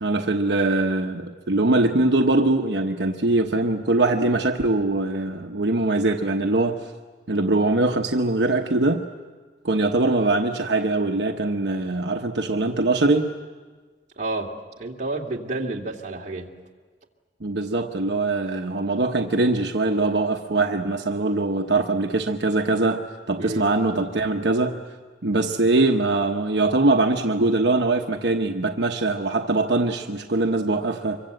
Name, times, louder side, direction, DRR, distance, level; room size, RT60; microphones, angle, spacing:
voice 1, 0.0-6.8 7.3-9.0 9.6-13.3 17.4-24.8 25.2-31.2, right 2 dB, 75° right, 3 dB, 1.1 m, -22 dB
voice 2, 14.2-14.5 14.8-16.5 23.4-23.7, right 2 dB, 45° right, -1 dB, 2.4 m, -30 dB
25.5 x 23.5 x 7.9 m, 1.4 s
head